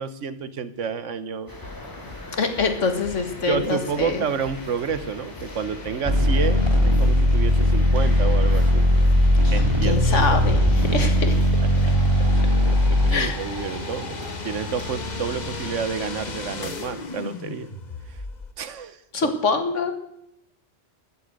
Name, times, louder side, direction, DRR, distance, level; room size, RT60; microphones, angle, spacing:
voice 1, 0.0-1.5 3.5-8.9 9.5-10.4 11.6-12.0 12.6-17.7 18.1-18.2 18.6-19.3, right 6 dB, 80° right, 13 dB, 1.4 m, -30 dB
sound 1, 1.5-17.0, left 1 dB, 15° left, 2.7 m, -40 dB
sound 2, 1.6-18.5, left 3 dB, 40° left, 1.2 m, -38 dB
voice 2, 2.4-4.3 9.4-11.4 13.1-13.3 19.1-19.9, left 4 dB, 80° left, 7 dB, 2.1 m, -25 dB
sound 3, 6.0-13.2, left 1 dB, 20° right, 2.1 m, -18 dB
14.0 x 13.0 x 8.1 m, 0.77 s
omnidirectional pair, 1.3 m